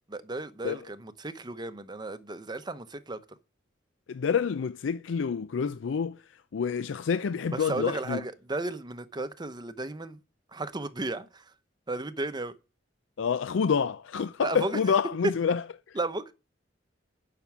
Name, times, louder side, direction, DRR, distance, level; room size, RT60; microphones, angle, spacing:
voice 1, 0.1-3.2 7.5-10.2 10.5-11.4 11.9-12.5 14.4-14.8 16.0-16.3, right 2 dB, 25° right, 0.7 m, -34 dB
voice 2, 4.1-6.2 6.5-8.2 13.2-16.0, left 6 dB, 85° left, 0.4 m, -28 dB
10.5 x 5.9 x 6.0 m
head